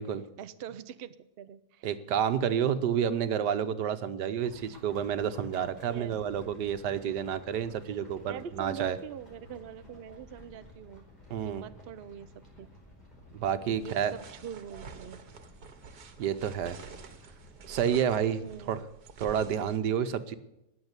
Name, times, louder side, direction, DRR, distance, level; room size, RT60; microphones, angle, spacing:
voice 1, 0.4-1.9 5.8-6.2 8.3-11.1 11.4-12.3 12.6-12.7 13.8-15.2 18.4-18.9, right 9 dB, 50° right, 12 dB, 0.7 m, -43 dB
voice 2, 1.8-9.0 11.3-11.6 13.3-14.1 16.2-16.8 17.7-18.8 19.2-20.3, right 8 dB, 90° right, 11 dB, 1.5 m, -30 dB
sound 1, 4.4-18.7, left 1 dB, 25° left, 5.1 m, -54 dB
sound 2, 13.8-19.8, right 5 dB, 70° right, 1.8 m, -49 dB
19.5 x 7.1 x 8.1 m, 0.88 s
omnidirectional pair, 1.7 m